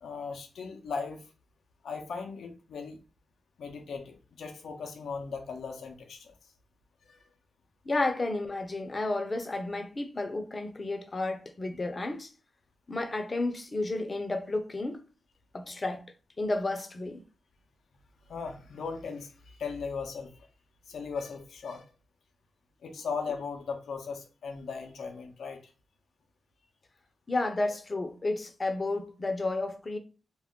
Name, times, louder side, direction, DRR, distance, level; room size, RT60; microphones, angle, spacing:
voice 1, 0.0-1.3 1.8-3.0 3.6-6.3 7.0-7.3 18.3-20.5 20.9-21.9 22.8-25.7, left 5 dB, 85° left, 0.5 m, -38 dB
voice 2, 7.9-12.3 12.9-15.0 15.5-16.0 16.4-17.2 27.3-30.0, left 2 dB, 40° left, 0.6 m, -32 dB
2.3 x 2.1 x 3.6 m
cardioid pair, 50°, 0 cm